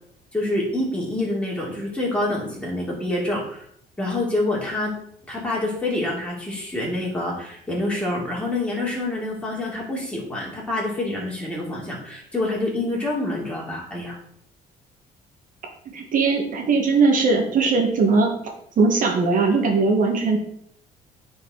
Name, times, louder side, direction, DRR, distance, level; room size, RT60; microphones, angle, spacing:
voice 1, 0.3-3.7 4.0-4.9 5.3-14.2, left 2 dB, 5° left, -4 dB, 3.4 m, -27 dB
voice 2, 15.9-18.3 18.8-20.4, right 4 dB, 50° right, 2 dB, 1.7 m, -19 dB
9.4 x 4.8 x 4.0 m, 0.66 s
cardioid pair, 110°, 17 cm